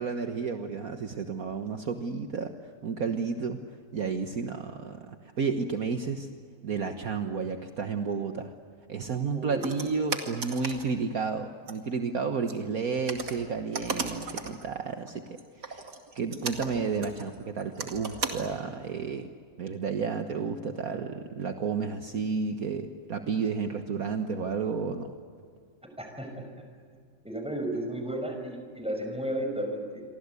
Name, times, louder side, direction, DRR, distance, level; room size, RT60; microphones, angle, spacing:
voice 1, 0.0-3.6 3.9-6.3 6.6-8.5 8.9-15.9 16.2-19.3 19.6-25.1, right 5 dB, 60° right, 6 dB, 1.7 m, -32 dB
voice 2, 9.3-9.7 26.0-26.5 27.2-30.0, right 1 dB, 5° right, 4 dB, 5.9 m, -33 dB
sound 1, 9.6-10.9 11.7-11.8 12.5-12.6 13.0-14.7 15.1-18.6, right 4 dB, 75° right, 2.9 m, -36 dB
29.5 x 24.0 x 8.3 m, 2.1 s
omnidirectional pair, 1.8 m